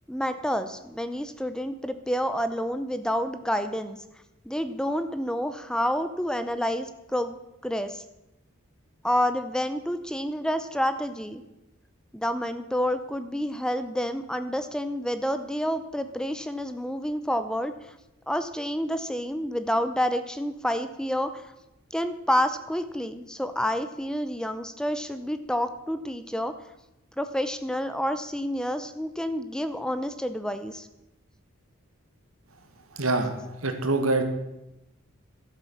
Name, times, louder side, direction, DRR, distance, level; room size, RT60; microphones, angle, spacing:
voice 1, 0.1-4.0 4.5-7.4 7.6-8.0 9.0-11.4 12.1-17.9 18.3-21.4 21.9-26.5 27.2-30.9, equal, 5° left, 10 dB, 0.6 m, -29 dB
voice 2, 32.9-34.2, right 2 dB, 85° right, 7 dB, 1.7 m, -25 dB
11.5 x 8.4 x 7.1 m, 0.94 s
head